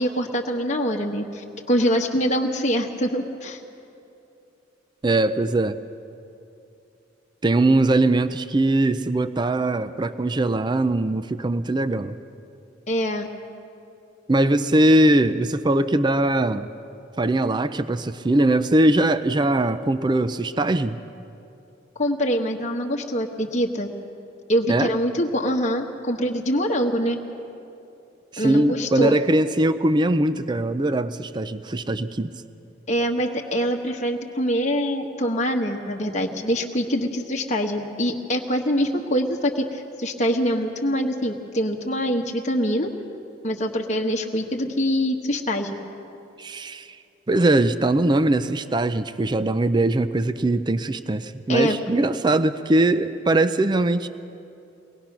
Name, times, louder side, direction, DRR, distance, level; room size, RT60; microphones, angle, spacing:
voice 1, 0.0-3.6 12.9-13.3 21.9-23.9 24.5-27.2 28.4-29.2 32.9-42.9 43.4-45.8 51.5-51.8, equal, 35° left, 1 dB, 1.2 m, -24 dB
voice 2, 5.0-5.8 7.4-12.2 14.3-16.7 17.2-21.0 24.7-24.9 28.3-32.3 46.4-46.9 47.3-54.1, right 1 dB, 20° right, 12 dB, 0.4 m, -21 dB
23.0 x 19.5 x 5.9 m, 2.7 s
head